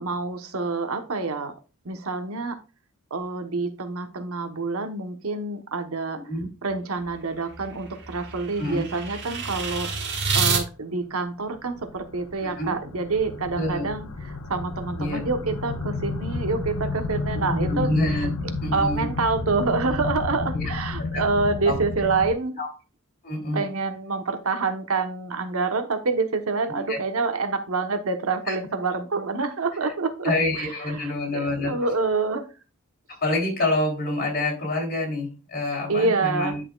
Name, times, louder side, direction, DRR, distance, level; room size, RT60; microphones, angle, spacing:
voice 1, 0.0-1.5 1.8-2.6 3.1-6.2 6.6-14.1 14.5-18.3 18.7-22.6 23.5-32.5 35.9-36.6, right 3 dB, 75° right, 7 dB, 1.0 m, -27 dB
sound 1, 7.0-10.6, right 4 dB, 55° right, 1.6 m, -28 dB
sound 2, 11.5-22.3, left 3 dB, 80° left, 1.1 m, -31 dB
voice 2, 12.4-12.7 13.6-13.8 15.0-15.2 17.5-18.3 18.6-19.1 20.5-20.7 21.1-21.2 21.7-21.8 22.6-22.7 23.2-23.6 26.7-27.0 28.5-28.6 29.8-29.9 30.2-31.8 33.1-36.6, left 2 dB, 45° left, 0 dB, 3.2 m, -27 dB
10.0 x 6.3 x 2.3 m, 0.33 s
head